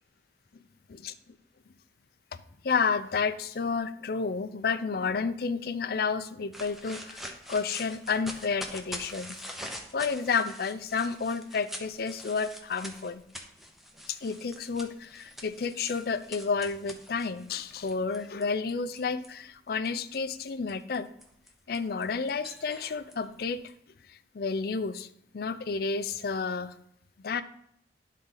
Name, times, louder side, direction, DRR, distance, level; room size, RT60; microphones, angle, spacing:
voice 1, 2.6-9.4 9.9-13.2 14.1-21.1 21.7-23.6 24.1-25.1 25.3-26.7 27.2-27.4, left 5 dB, 60° left, 12 dB, 0.5 m, -31 dB
sound 1, 6.5-19.3 19.8-23.7, equal, ahead, 0.7 m, -44 dB
11.0 x 4.2 x 3.8 m, 0.70 s
head